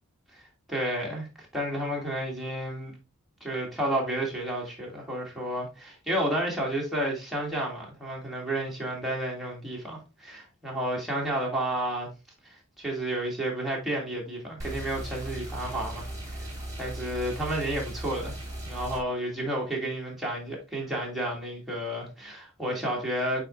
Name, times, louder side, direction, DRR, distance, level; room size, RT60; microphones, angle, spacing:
voice 1, 0.7-2.9 3.4-12.1 12.4-16.5 16.8-18.4 18.6-23.4, right 1 dB, ahead, 2.5 m, -31 dB
sound 1, 14.6-19.0, right 1 dB, 15° right, 4.1 m, -37 dB
8.5 x 4.4 x 2.6 m
head